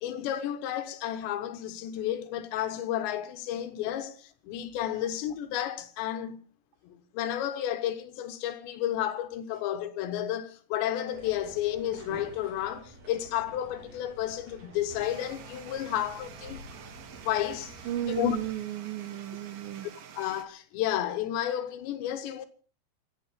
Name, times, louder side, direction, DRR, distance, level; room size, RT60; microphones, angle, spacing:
voice 1, 0.0-6.4 6.8-16.6 17.2-17.8 18.0-18.4 20.2-22.5, left 11 dB, 75° left, 3.1 m, -32 dB
sound 1, 11.1-18.5, right 2 dB, 40° right, 4.6 m, -49 dB
sound 2, 15.0-20.5, right 8 dB, 60° right, 2.5 m, -48 dB
voice 2, 17.9-20.0, right 12 dB, 90° right, 2.0 m, -34 dB
26.5 x 8.9 x 5.1 m
omnidirectional pair, 5.4 m